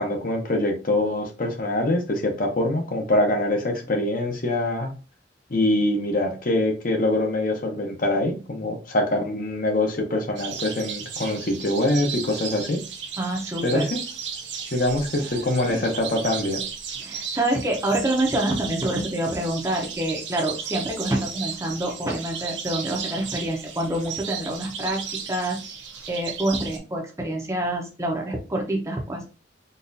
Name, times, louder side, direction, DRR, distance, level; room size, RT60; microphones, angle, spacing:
voice 1, 0.0-4.9 5.5-12.8 13.6-14.0 14.7-16.6, left 1 dB, 45° left, 3 dB, 0.7 m, -24 dB
sound 1, 10.4-26.8, right 6 dB, 65° right, 0.6 m, -35 dB
voice 2, 13.2-13.9 15.7-15.8 17.0-25.0 25.3-29.3, right 1 dB, 15° right, 0 dB, 0.6 m, -27 dB
3.9 x 2.4 x 2.6 m, 0.34 s
head